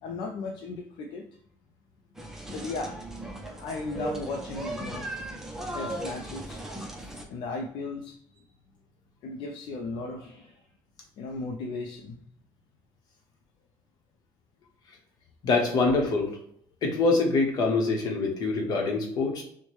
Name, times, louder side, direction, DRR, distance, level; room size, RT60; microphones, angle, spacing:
voice 1, 0.0-1.3 2.5-3.0 3.6-5.1 5.7-6.6 7.0-8.5 9.2-10.6 11.2-12.2, left 3 dB, 65° left, 3 dB, 0.4 m, -36 dB
sound 1, 2.2-7.2, right 1 dB, 5° right, 0.5 m, -37 dB
voice 2, 15.4-16.4 16.8-19.4, left 3 dB, 50° left, 1 dB, 1.0 m, -25 dB
4.5 x 2.1 x 3.1 m, 0.65 s
cardioid pair, 145°, 8 cm